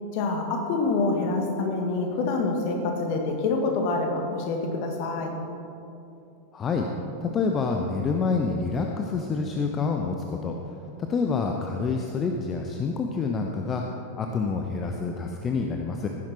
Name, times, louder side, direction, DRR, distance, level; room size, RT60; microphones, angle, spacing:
voice 1, 0.1-5.3, left 3 dB, 45° left, 2 dB, 2.1 m, -26 dB
voice 2, 6.5-6.9 7.2-10.5 11.1-13.8 14.2-16.1, left 4 dB, 25° left, 2 dB, 0.9 m, -27 dB
16.5 x 10.5 x 4.5 m, 2.8 s
figure-of-eight pair, 90°, 0 cm